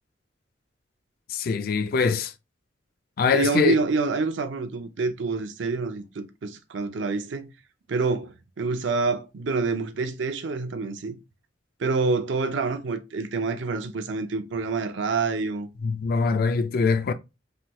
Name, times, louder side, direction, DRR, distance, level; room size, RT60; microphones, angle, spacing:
voice 1, 1.3-2.3 3.2-3.8 15.8-17.1, left 5 dB, 55° left, 0.3 m, -23 dB
voice 2, 3.3-7.5 7.9-11.2 11.8-15.7, right 4 dB, 80° right, 0.5 m, -27 dB
3.2 x 2.2 x 2.7 m
head